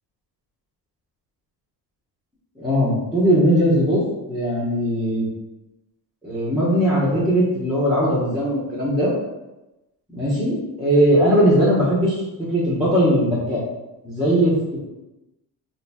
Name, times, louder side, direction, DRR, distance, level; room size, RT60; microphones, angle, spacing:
voice 1, 2.6-4.0 4.3-5.3 6.2-9.1 10.1-12.2 12.5-13.6 14.0-14.8, equal, ahead, -9 dB, 1.1 m, -19 dB
3.8 x 2.7 x 2.3 m, 0.99 s
cardioid pair, 105°, 45 cm